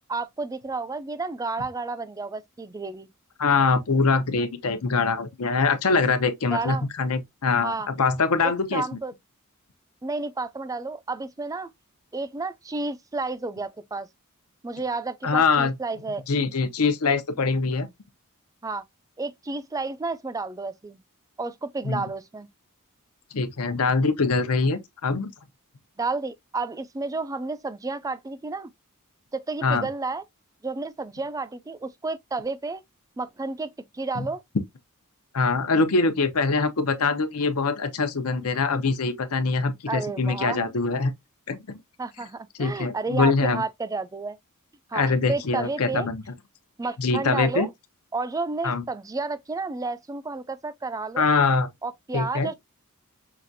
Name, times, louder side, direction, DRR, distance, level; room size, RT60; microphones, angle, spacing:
voice 1, 0.0-3.1 6.5-6.9 7.6-7.9 8.4-9.1 10.0-11.7 12.1-14.1 14.6-16.2 18.6-18.8 19.2-21.0 21.4-22.5 26.0-28.7 29.3-30.2 30.6-32.8 33.2-34.4 39.9-40.6 42.0-44.4 44.9-46.1 46.8-47.7 48.1-51.3 51.8-52.5, right 3 dB, 15° right, 0.3 m, -31 dB
voice 2, 3.4-8.8 15.2-15.7 16.3-17.9 21.8-22.0 23.3-25.3 29.6-29.9 35.3-41.1 41.5-41.8 42.6-43.6 44.9-46.2 47.0-47.7 48.6-48.8 51.2-51.7 52.1-52.5, left 4 dB, 75° left, 0.7 m, -23 dB
5.7 x 2.4 x 2.6 m
head